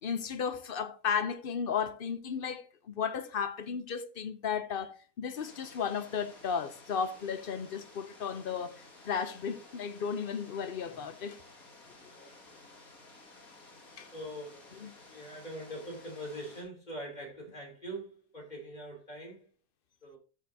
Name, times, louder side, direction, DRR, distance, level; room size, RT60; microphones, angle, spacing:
voice 1, 0.0-11.4 14.0-14.1 14.7-14.9, left 6 dB, 50° left, 0.7 m, -34 dB
sound 1, 5.3-16.6, left 2 dB, 80° left, 3.1 m, -54 dB
voice 2, 12.1-12.4 14.1-19.4 20.0-20.2, right 1 dB, 30° left, 3.3 m, -43 dB
13.0 x 6.4 x 2.7 m
omnidirectional pair, 1.5 m